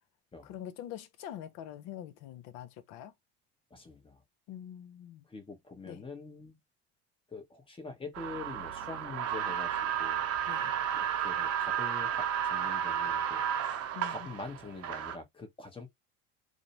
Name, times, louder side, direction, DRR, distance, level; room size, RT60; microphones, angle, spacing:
voice 1, 0.4-3.1 4.5-5.2 5.9-6.0 10.5-10.8 13.9-14.3, left 11 dB, 55° left, 0.6 m, -44 dB
voice 2, 3.7-4.2 5.3-6.6 7.3-10.3 10.9-13.5 14.1-15.9, left 3 dB, 15° left, 0.8 m, -45 dB
sound 1, 8.2-15.2, right 9 dB, 50° right, 0.7 m, -32 dB
2.5 x 2.0 x 2.9 m
hypercardioid pair, 75°, 32 cm